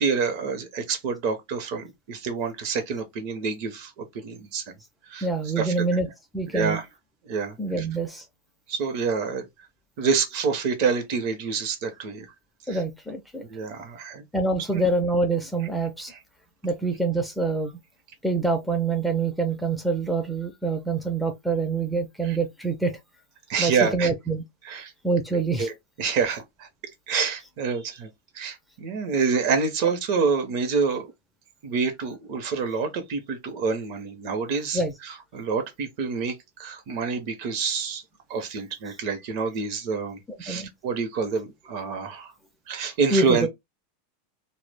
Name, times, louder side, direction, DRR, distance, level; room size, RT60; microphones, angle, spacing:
voice 1, 0.0-4.7 5.1-5.3 5.6-5.8 6.5-6.8 7.3-7.9 8.7-9.4 10.0-12.3 12.7-12.8 13.5-14.2 14.7-14.8 22.3-22.4 23.5-24.1 24.6-24.9 25.6-25.7 26.0-26.7 27.1-28.1 28.3-31.1 31.6-34.8 35.3-38.0 38.3-42.3 42.7-43.5, right 5 dB, 50° right, 0.6 m, -27 dB
voice 2, 5.2-6.1 6.3-6.8 7.6-8.3 12.7-13.4 14.3-16.1 16.6-17.7 18.2-23.0 23.6-24.4 25.0-25.7 29.8-29.9 34.7-34.9 40.3-40.7 43.1-43.5, right 3 dB, ahead, 0.4 m, -26 dB
2.1 x 2.0 x 3.2 m
supercardioid pair, 150°, 0 cm